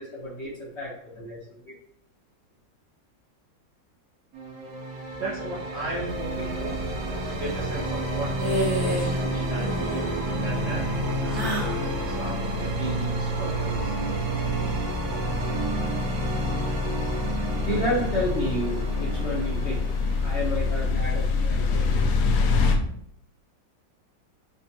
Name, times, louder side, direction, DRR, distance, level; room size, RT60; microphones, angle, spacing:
voice 1, 0.0-1.4 1.6-1.7 17.4-22.5, equal, 55° left, -5 dB, 0.8 m, -31 dB
sound 1, 4.3-22.1, right 2 dB, 80° right, 1.4 m, -30 dB
voice 2, 5.2-6.7 7.3-10.9 11.2-13.9, right 2 dB, 55° right, -7 dB, 0.7 m, -36 dB
sound 2, 6.1-22.8, left 4 dB, 75° left, 1.1 m, -29 dB
sound 3, 8.4-9.2 9.5-10.1 11.3-11.8, right 1 dB, 20° right, 0.6 m, -29 dB
5.0 x 2.2 x 2.8 m, 0.70 s
omnidirectional pair, 1.9 m